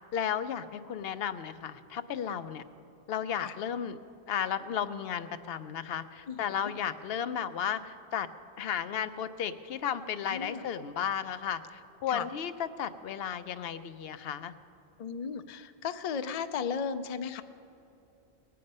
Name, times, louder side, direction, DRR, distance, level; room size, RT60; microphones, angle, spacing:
voice 1, 0.1-2.6 3.1-4.0 4.3-8.3 8.6-14.5, left 8 dB, 75° left, 12 dB, 0.8 m, -34 dB
voice 2, 10.3-10.6 12.1-12.3 15.0-17.4, left 6 dB, 50° left, 11 dB, 0.5 m, -35 dB
19.5 x 8.6 x 5.4 m, 2.7 s
omnidirectional pair, 1.1 m